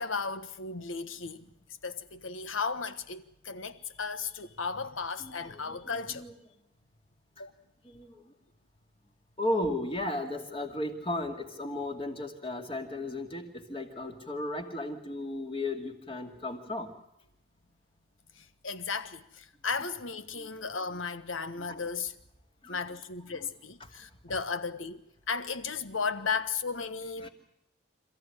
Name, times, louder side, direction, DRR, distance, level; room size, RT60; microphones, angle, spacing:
voice 1, 0.0-1.5 1.8-6.2 7.4-7.5 18.6-22.1 22.7-25.0 25.3-27.3, left 5 dB, 85° left, 1.4 m, -35 dB
voice 2, 5.2-6.3 7.9-8.1 9.4-16.9 20.4-20.5 21.7-21.8 22.6-22.8 27.2-27.3, left 1 dB, 30° left, 2.5 m, -35 dB
27.5 x 14.5 x 10.0 m
head